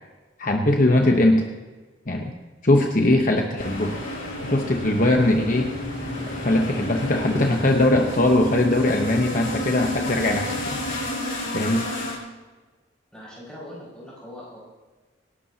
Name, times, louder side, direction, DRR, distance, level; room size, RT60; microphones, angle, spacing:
voice 1, 0.4-1.5 2.1-2.3 2.6-3.9 4.4-5.7 6.3-10.8 11.5-11.8, left 1 dB, 45° left, 2 dB, 0.9 m, -20 dB
sound 1, 3.6-12.2, left 1 dB, 90° left, 5.3 m, -31 dB
sound 2, 4.9-11.1, right 1 dB, 25° right, 0.7 m, -40 dB
voice 2, 13.1-14.6, left 1 dB, 5° left, -8 dB, 5.8 m, -41 dB
25.5 x 11.5 x 2.9 m, 1.3 s
head